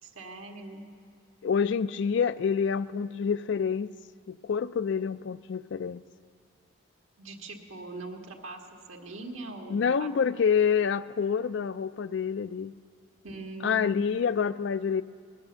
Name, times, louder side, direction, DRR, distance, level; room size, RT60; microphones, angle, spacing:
voice 1, 0.0-0.8 7.2-8.6 8.9-10.1 13.2-14.0, right 2 dB, 85° right, 1.7 m, -41 dB
voice 2, 1.4-3.9 4.3-6.0 9.7-12.7 13.6-15.0, left 6 dB, 60° left, 0.3 m, -27 dB
19.5 x 10.5 x 6.9 m
head